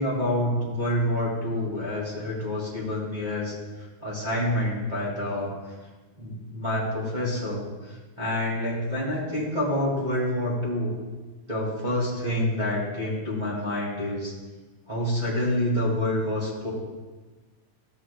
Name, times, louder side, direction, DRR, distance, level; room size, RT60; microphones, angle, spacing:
voice 1, 0.0-3.5 4.0-5.5 6.2-7.6 8.2-10.9 11.5-14.3 14.9-16.7, left 1 dB, 15° right, -6 dB, 1.8 m, -27 dB
13.5 x 8.5 x 2.3 m, 1.3 s
omnidirectional pair, 3.6 m